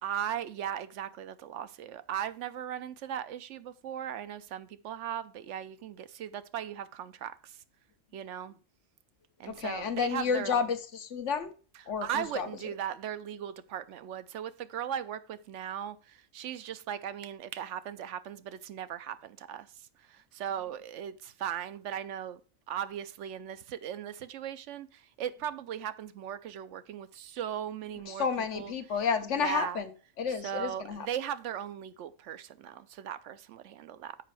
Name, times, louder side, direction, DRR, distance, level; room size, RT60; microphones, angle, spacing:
voice 1, 0.0-7.6 8.1-8.5 9.4-10.7 11.7-22.4 22.7-28.7 29.3-29.8 30.4-34.2, right 9 dB, 75° right, 0.9 m, -38 dB
voice 2, 9.5-11.5 11.9-12.5 28.1-29.9 30.2-31.1, left 6 dB, 70° left, 1.2 m, -31 dB
7.5 x 5.1 x 4.7 m
omnidirectional pair, 1.3 m